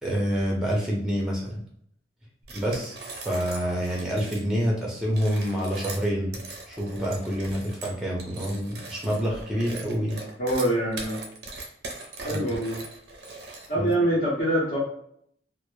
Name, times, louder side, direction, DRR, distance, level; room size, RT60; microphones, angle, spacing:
voice 1, 0.0-1.6 2.5-6.4 6.7-10.2 12.3-12.4 13.8-13.9, equal, 5° right, -3 dB, 0.5 m, -27 dB
sound 1, 2.4-4.5 5.1-13.9, right 3 dB, 60° right, 0.4 m, -40 dB
voice 2, 10.4-11.2 12.2-12.8 13.7-14.8, right 1 dB, 45° left, -7 dB, 0.7 m, -25 dB
2.1 x 2.0 x 3.0 m, 0.68 s
head